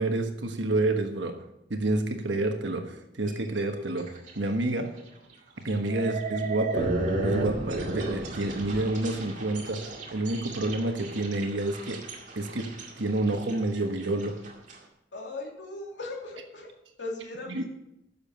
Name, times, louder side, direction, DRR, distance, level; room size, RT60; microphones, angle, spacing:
voice 1, 0.0-1.4 1.7-4.1 4.3-4.9 5.6-6.9 7.2-12.0 12.3-14.4 17.5-17.7, right 2 dB, 75° right, 5 dB, 1.3 m, -29 dB
sound 1, 3.3-3.6 4.0-4.4 4.8-4.9 5.7-14.8, right 2 dB, 40° right, 2.1 m, -33 dB
voice 2, 15.1-17.7, left 2 dB, 70° left, -1 dB, 2.7 m, -39 dB
11.0 x 7.0 x 7.0 m, 0.84 s
head